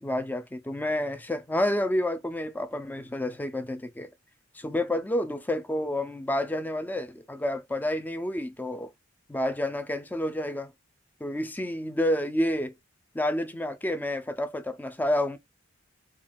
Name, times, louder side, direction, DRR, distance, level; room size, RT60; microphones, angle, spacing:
voice 1, 0.0-4.1 4.5-8.9 9.3-10.7 11.2-12.7 13.1-15.4, left 1 dB, 10° left, 0.4 m, -29 dB
2.3 x 2.3 x 3.3 m
head